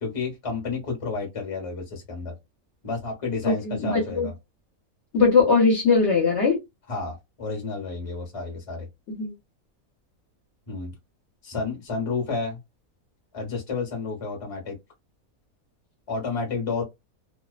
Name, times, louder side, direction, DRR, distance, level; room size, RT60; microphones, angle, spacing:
voice 1, 0.0-2.3 2.8-4.3 6.9-8.9 10.7-10.9 11.4-12.6 13.3-14.8 16.1-16.8, left 4 dB, 25° left, 1.0 m, -31 dB
voice 2, 3.6-4.3 5.1-6.6 9.1-9.3, left 4 dB, 55° left, 1.1 m, -20 dB
2.6 x 2.1 x 2.3 m
omnidirectional pair, 1.5 m